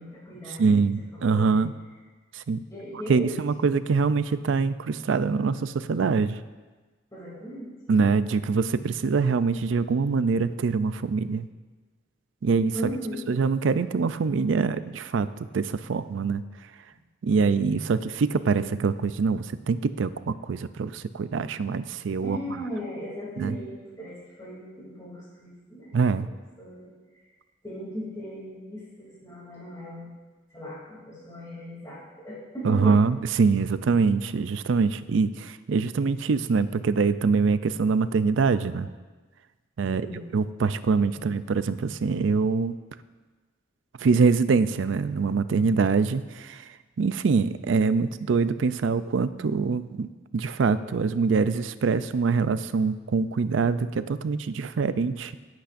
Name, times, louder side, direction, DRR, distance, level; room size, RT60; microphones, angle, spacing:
voice 1, 0.0-0.8 1.1-1.6 2.7-3.4 7.1-7.7 12.7-13.2 22.2-26.0 26.6-26.9 27.6-30.1 30.5-33.0 39.9-40.2 41.1-41.2, equal, 20° left, -8 dB, 2.8 m, -37 dB
voice 2, 0.6-1.7 2.3-2.6 3.1-6.4 7.9-11.5 12.4-12.8 13.3-15.3 15.5-16.4 17.2-22.6 23.4-23.6 25.9-26.3 32.6-38.9 39.8-40.1 40.3-42.8 44.0-46.7 47.0-50.1 50.3-55.3, right 4 dB, 80° right, 13 dB, 0.4 m, -24 dB
18.5 x 8.3 x 2.6 m, 1.3 s
head